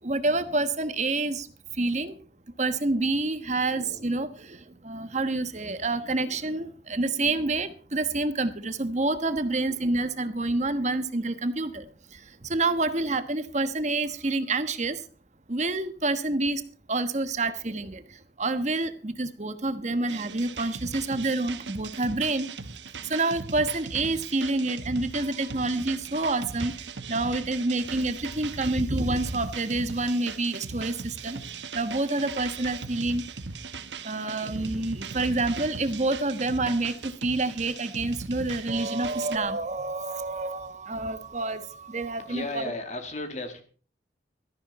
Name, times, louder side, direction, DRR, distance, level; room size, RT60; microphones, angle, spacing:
voice 1, 0.0-1.5 1.7-2.2 2.6-15.0 15.5-16.6 16.9-22.5 23.0-31.5 31.7-33.2 34.0-42.7, right 2 dB, 40° right, 10 dB, 1.2 m, -28 dB
sound 1, 20.1-39.4, right 4 dB, 80° right, 1.1 m, -39 dB
voice 2, 42.3-43.6, left 2 dB, 40° left, 6 dB, 2.3 m, -34 dB
16.5 x 13.5 x 4.2 m, 0.41 s
head